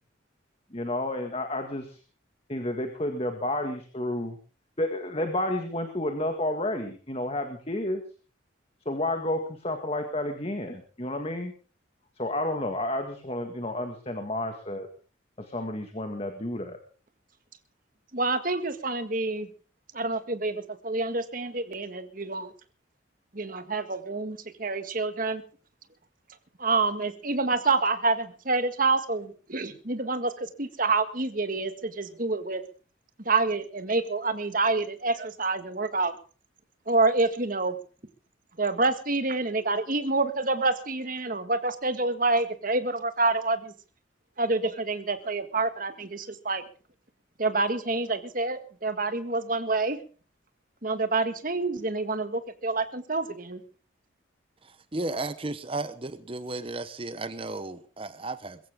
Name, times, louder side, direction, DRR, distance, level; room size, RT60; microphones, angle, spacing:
voice 1, 0.7-2.0 2.5-4.4 4.8-8.0 8.9-11.5 12.2-14.9 15.4-16.8, left 1 dB, 30° left, 1.9 m, -31 dB
voice 2, 18.1-19.5 19.9-22.5 23.3-25.4 26.6-32.6 33.2-36.1 36.9-37.8 38.6-43.7 44.4-46.6 47.4-50.0 50.8-53.6, right 3 dB, 45° right, 1.7 m, -27 dB
voice 3, 54.6-58.6, right 2 dB, 25° right, 0.9 m, -34 dB
22.5 x 15.0 x 3.6 m
head